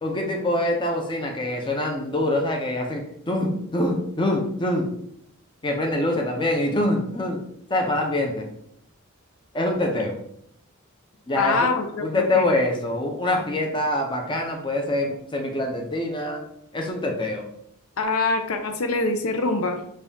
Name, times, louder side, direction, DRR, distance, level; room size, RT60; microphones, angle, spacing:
voice 1, 0.0-4.9 5.6-7.4 7.7-8.5 9.5-10.2 11.3-11.7 12.0-16.4 16.7-17.5, left 1 dB, 20° left, 2 dB, 0.5 m, -25 dB
voice 2, 11.3-12.5 18.0-19.8, left 3 dB, 75° left, 6 dB, 0.5 m, -24 dB
5.2 x 2.3 x 2.7 m, 0.71 s
head